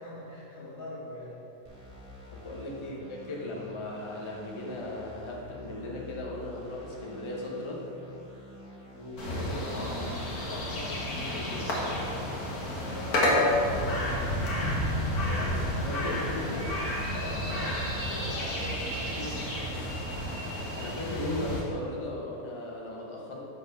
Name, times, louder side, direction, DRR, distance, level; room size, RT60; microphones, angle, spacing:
voice 1, 0.0-1.4 2.5-3.0 8.9-12.2 12.9-14.5 15.1-16.6 17.1-19.4, left 1 dB, 65° left, -7 dB, 2.4 m, -42 dB
sound 1, 1.6-17.0, left 1 dB, 20° right, 1.4 m, -48 dB
voice 2, 2.3-7.9 15.3-16.7 20.7-23.4, left 1 dB, 25° left, -3 dB, 0.8 m, -37 dB
sound 2, 9.2-21.6, left 1 dB, 90° left, 1.8 m, -30 dB
sound 3, 16.5-21.3, right 2 dB, 85° right, 1.5 m, -42 dB
6.6 x 5.1 x 5.4 m, 2.7 s
omnidirectional pair, 1.5 m